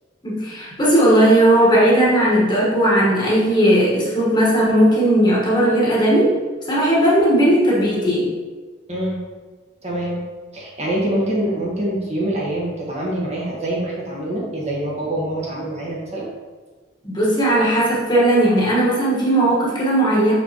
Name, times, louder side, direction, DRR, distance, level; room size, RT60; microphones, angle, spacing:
voice 1, 0.2-6.3 6.7-8.3 17.0-20.3, right 1 dB, 25° left, -6 dB, 1.4 m, -16 dB
voice 2, 8.9-9.2 9.8-10.2 10.5-16.3, right 1 dB, 35° right, -5 dB, 1.4 m, -25 dB
6.4 x 5.0 x 3.0 m, 1.4 s
head